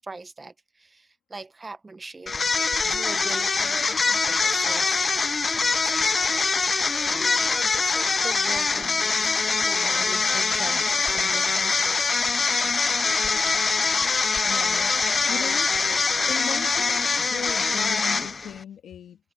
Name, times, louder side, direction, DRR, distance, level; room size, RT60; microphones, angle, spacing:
voice 1, 0.0-2.3 2.8-5.1 5.5-12.2 15.9-16.0 17.0-17.1, right 3 dB, 25° right, 1.1 m, -41 dB
sound 1, 2.3-18.6, left 4 dB, 30° left, 0.6 m, -23 dB
voice 2, 14.4-14.9 15.3-15.8 16.3-19.2, left 9 dB, 65° left, 3.4 m, -37 dB
cardioid pair, 90°, 0 cm